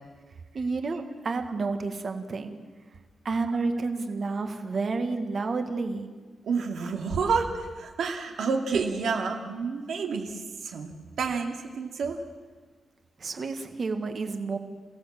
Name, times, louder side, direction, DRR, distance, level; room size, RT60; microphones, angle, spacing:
voice 1, 0.5-2.6 3.2-6.1 13.2-14.6, right 3 dB, 40° right, 7 dB, 1.6 m, -30 dB
voice 2, 6.4-10.9 11.2-12.2, right 5 dB, 80° right, 2 dB, 2.6 m, -29 dB
28.0 x 17.0 x 7.5 m, 1.5 s
wide cardioid pair, 175°, 0 cm